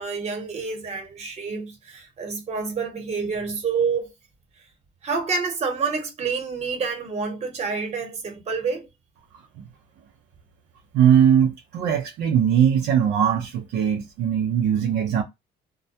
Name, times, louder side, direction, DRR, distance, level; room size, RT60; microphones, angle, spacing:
voice 1, 0.0-4.1 5.0-8.9, right 5 dB, 40° right, 1.0 m, -28 dB
voice 2, 10.9-15.2, right 9 dB, 80° right, 0.6 m, -20 dB
2.2 x 2.1 x 2.6 m
cardioid pair, 110°, 17 cm